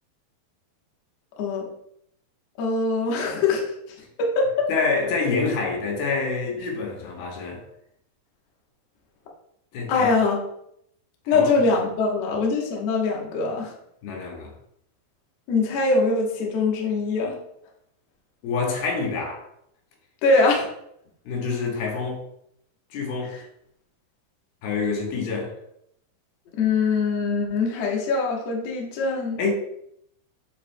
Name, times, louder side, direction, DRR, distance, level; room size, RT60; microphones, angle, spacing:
voice 1, 2.6-3.6 4.2-4.7 9.9-10.4 11.3-13.7 15.5-17.4 20.2-20.7 23.3-23.4 26.5-29.4, left 3 dB, 60° left, -1 dB, 1.7 m, -22 dB
voice 2, 4.7-7.6 9.7-10.1 11.3-11.5 14.0-14.5 18.4-19.4 21.3-22.2 22.9-23.4 24.6-25.5 29.4-29.5, left 4 dB, 80° left, 0 dB, 3.2 m, -27 dB
7.3 x 7.2 x 2.2 m, 0.74 s
omnidirectional pair, 4.3 m